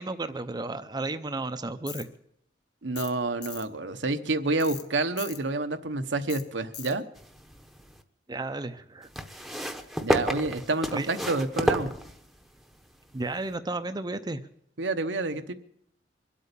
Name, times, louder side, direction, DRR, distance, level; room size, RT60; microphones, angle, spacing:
voice 1, 0.0-2.1 8.3-9.1 10.9-11.1 13.1-14.4, right 2 dB, 25° right, 8 dB, 0.6 m, -33 dB
Tools, 1.9-2.1 3.0-3.1 3.4-3.7 4.6-4.8 5.2-5.4 6.3-6.4 6.7-6.9, left 10 dB, 70° left, 1.3 m, -40 dB
voice 2, 2.8-7.0 10.0-11.9 14.8-15.5, right 2 dB, 75° right, 9 dB, 0.9 m, -28 dB
sound 1, 7.2-8.0 9.1-12.6 13.5-13.6, equal, ahead, 0.9 m, -30 dB
23.0 x 8.5 x 6.8 m, 0.72 s
head